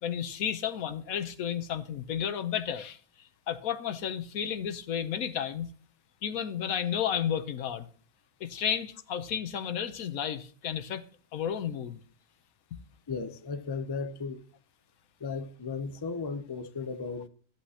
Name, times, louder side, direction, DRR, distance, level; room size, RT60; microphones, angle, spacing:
voice 1, 0.0-3.0 3.5-5.7 6.2-7.9 8.4-11.0 11.3-12.0, left 9 dB, 90° left, 1.3 m, -32 dB
voice 2, 13.1-14.4 15.2-17.3, left 4 dB, 30° left, 0.5 m, -35 dB
13.5 x 8.5 x 2.9 m
omnidirectional pair, 1.4 m